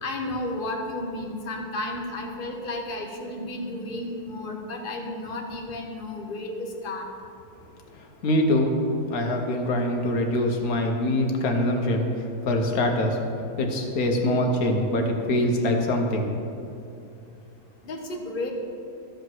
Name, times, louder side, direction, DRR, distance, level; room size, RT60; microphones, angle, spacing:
voice 1, 0.0-7.0 17.8-18.5, left 2 dB, 35° left, 1 dB, 1.1 m, -32 dB
voice 2, 8.2-8.7 9.1-12.1 12.4-13.2 13.6-16.3, left 1 dB, 65° left, 2 dB, 1.5 m, -23 dB
13.0 x 5.1 x 6.1 m, 2.7 s
omnidirectional pair, 1.7 m